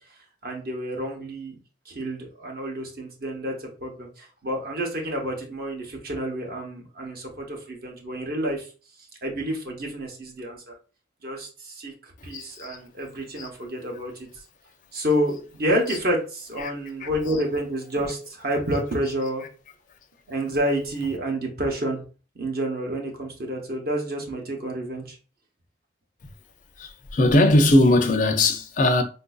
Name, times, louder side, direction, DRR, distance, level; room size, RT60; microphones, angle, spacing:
voice 1, 0.4-1.6 1.9-8.7 9.2-10.7 11.2-14.3 14.9-19.4 20.3-22.0 22.3-25.2, right 1 dB, 50° right, 0.8 m, -29 dB
voice 2, 12.3-12.8 13.4-13.5 15.9-16.0 16.6-16.7 17.2-17.5 19.0-19.3 21.0-21.1 26.8-29.0, left 1 dB, 40° left, 0.4 m, -21 dB
4.1 x 2.5 x 2.3 m
head